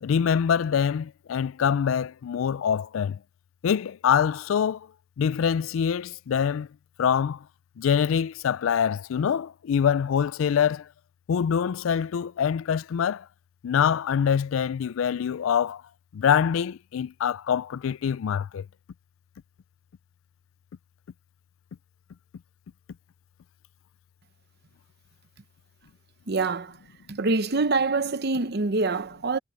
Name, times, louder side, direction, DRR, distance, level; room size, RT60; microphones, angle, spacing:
voice 1, 0.0-3.2 3.6-4.9 5.2-6.7 7.0-7.4 7.8-10.9 11.3-13.3 13.6-15.8 16.1-18.7, left 7 dB, 90° left, 0.4 m, -24 dB
voice 2, 26.3-26.8 27.1-29.4, right 3 dB, 55° right, 0.8 m, -25 dB
head